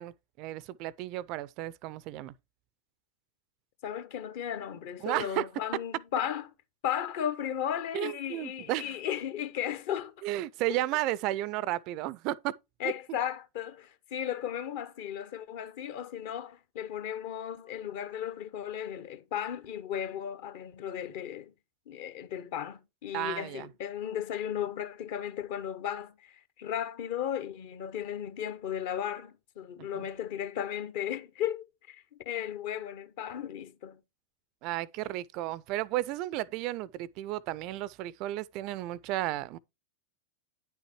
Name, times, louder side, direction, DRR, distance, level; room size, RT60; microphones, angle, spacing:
voice 1, 0.0-2.3 5.0-5.4 7.9-9.0 10.2-12.5 23.1-23.7 29.9-30.1 34.6-39.6, right 15 dB, 40° right, 0.4 m, -33 dB
voice 2, 3.8-6.5 6.8-10.1 10.7-10.8 12.8-21.5 21.9-34.0, left 9 dB, 50° left, 1.0 m, -35 dB
9.9 x 6.3 x 3.0 m
figure-of-eight pair, 90°, 0 cm